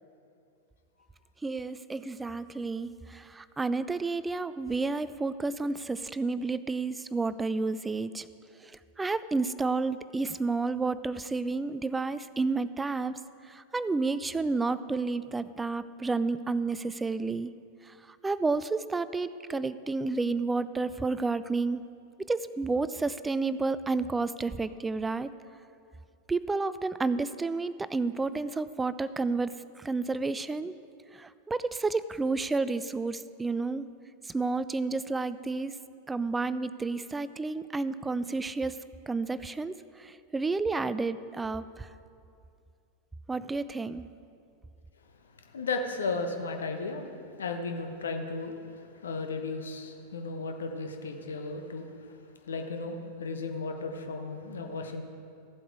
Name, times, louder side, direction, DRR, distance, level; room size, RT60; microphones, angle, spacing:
voice 1, 1.4-8.3 8.6-17.5 17.8-21.8 22.2-25.3 26.3-30.8 31.1-33.9 34.2-35.8 36.1-38.8 39.1-41.9 43.3-44.1, right 3 dB, 10° right, 15 dB, 0.3 m, -31 dB
voice 2, 45.4-52.2 52.5-55.0, left 3 dB, 70° left, 5 dB, 1.0 m, -35 dB
14.5 x 7.7 x 4.7 m, 2.5 s
figure-of-eight pair, 90°, 0 cm